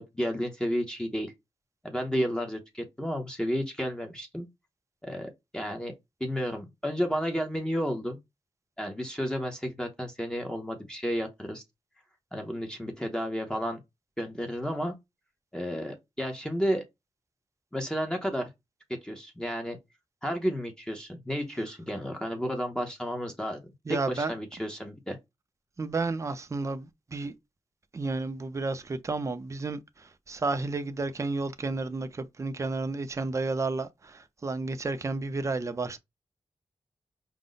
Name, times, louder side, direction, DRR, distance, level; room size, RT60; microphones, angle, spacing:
voice 1, 0.0-1.3 1.8-4.5 5.0-5.9 6.2-8.2 8.8-11.6 12.3-13.8 14.2-15.0 15.5-16.8 17.7-18.5 19.0-19.8 20.2-23.6 23.9-25.2, equal, 5° left, 0.7 m, -32 dB
voice 2, 23.9-24.3 25.8-27.3 27.9-36.0, right 3 dB, 25° right, 0.5 m, -32 dB
5.0 x 2.0 x 3.9 m
wide cardioid pair, 180°, 11 cm